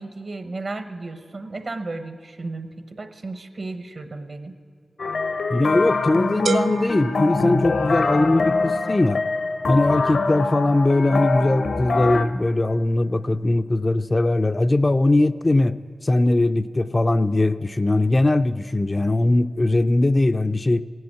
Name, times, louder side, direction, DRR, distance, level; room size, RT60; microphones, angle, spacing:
voice 1, 0.0-4.6, right 3 dB, 50° right, 9 dB, 0.9 m, -34 dB
sound 1, 5.0-12.3, left 3 dB, 70° left, 0.7 m, -24 dB
voice 2, 5.5-9.2 9.7-15.8 16.0-20.8, left 2 dB, 25° left, 10 dB, 0.3 m, -20 dB
sound 2, 6.5-8.3, right 5 dB, 80° right, 0.4 m, -30 dB
17.0 x 7.7 x 8.2 m, 2.4 s
wide cardioid pair, 90°, 0 cm